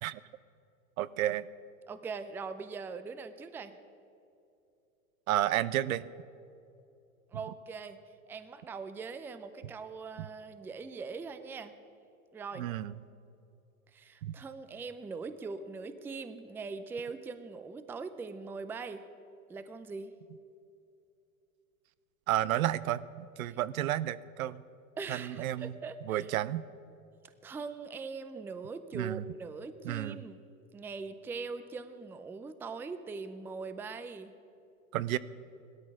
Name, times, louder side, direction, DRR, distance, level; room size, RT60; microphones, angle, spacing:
voice 1, 1.0-1.5 5.3-6.1 12.6-13.0 14.2-14.3 22.3-24.6 25.1-25.7 26.1-26.7 28.9-29.2 29.8-30.2 34.9-35.2, right 13 dB, 75° right, 17 dB, 0.7 m, -31 dB
voice 2, 1.9-3.8 7.3-8.0 8.3-11.7 12.3-12.7 13.9-19.0 19.5-20.1 23.4-23.6 25.0-26.3 27.2-30.4 30.7-34.3, right 4 dB, 5° right, 11 dB, 0.4 m, -41 dB
16.5 x 13.0 x 6.0 m, 2.7 s
hypercardioid pair, 115°, 42 cm